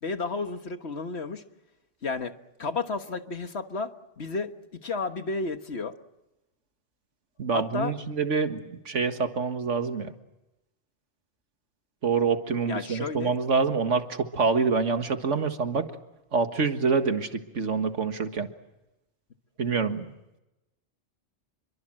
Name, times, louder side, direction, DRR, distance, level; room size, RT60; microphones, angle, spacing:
voice 1, 0.0-1.4 2.0-2.3 2.6-4.5 4.8-5.9 7.5-7.9 12.7-13.4, left 3 dB, 65° left, 8 dB, 1.7 m, -32 dB
voice 2, 7.4-10.1 12.0-15.9 16.3-18.5 19.6-20.1, right 5 dB, 90° right, 8 dB, 2.0 m, -26 dB
29.0 x 23.5 x 7.7 m, 0.93 s
omnidirectional pair, 1.2 m